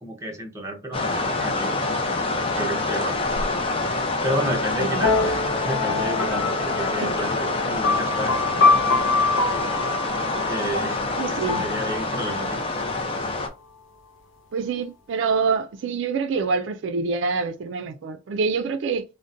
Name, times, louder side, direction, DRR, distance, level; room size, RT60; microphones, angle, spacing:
voice 1, 0.0-1.8 2.5-3.2 4.2-8.4 10.5-11.0 11.4-12.6, right 1 dB, 15° right, 0.7 m, -31 dB
sound 1, 0.9-13.5, left 3 dB, 30° left, 0.5 m, -26 dB
voice 2, 4.8-5.1 6.9-7.0 11.1-11.7 14.5-19.0, right 5 dB, 70° right, 0.4 m, -26 dB
sound 2, 5.0-12.6, left 3 dB, 80° left, 0.5 m, -25 dB
3.7 x 2.1 x 2.5 m
head